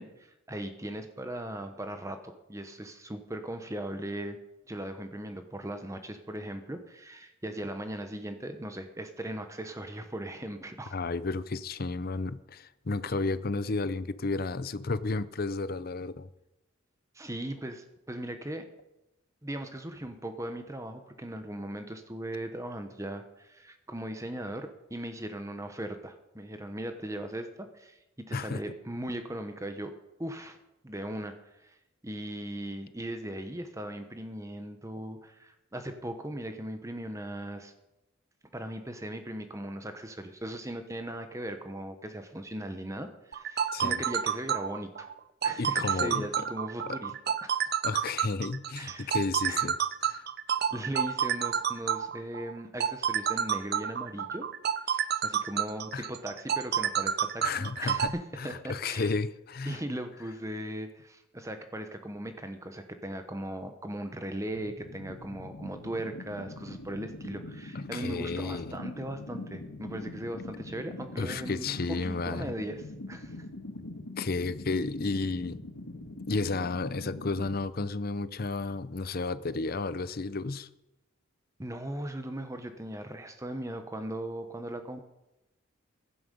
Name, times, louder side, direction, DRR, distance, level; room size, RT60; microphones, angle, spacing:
voice 1, 0.0-4.4 4.7-10.9 17.1-18.7 19.4-29.9 30.2-30.6 30.8-31.4 31.6-31.8 32.0-37.7 38.5-45.1 45.4-47.1 47.4-47.6 48.8-49.2 49.5-49.6 50.7-54.5 54.8-59.1 59.7-73.5 81.6-85.0, right 1 dB, 15° right, 1.0 m, -38 dB
voice 2, 10.9-16.3 28.3-28.6 43.7-44.0 45.6-46.4 46.9-47.0 47.8-49.8 50.0-50.3 55.9-56.1 57.4-59.8 67.7-68.8 71.2-72.5 74.2-75.6 76.3-80.7, left 3 dB, 45° left, 0.6 m, -32 dB
sound 1, 43.3-58.1, right 8 dB, 50° right, 0.6 m, -29 dB
sound 2, 64.6-77.6, left 2 dB, 85° left, 1.7 m, -43 dB
16.0 x 11.5 x 5.3 m
head